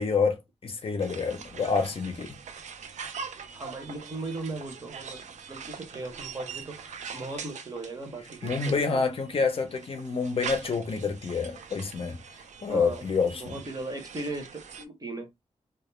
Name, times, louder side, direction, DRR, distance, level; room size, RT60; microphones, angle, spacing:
voice 1, 0.0-2.4 8.4-12.2 12.6-13.6, left 5 dB, 50° left, 0.5 m, -28 dB
sound 1, 1.0-14.9, right 6 dB, 80° right, 0.4 m, -43 dB
voice 2, 3.5-9.0 12.7-15.3, right 2 dB, 30° right, 0.6 m, -38 dB
2.2 x 2.0 x 3.0 m
wide cardioid pair, 140°, 12 cm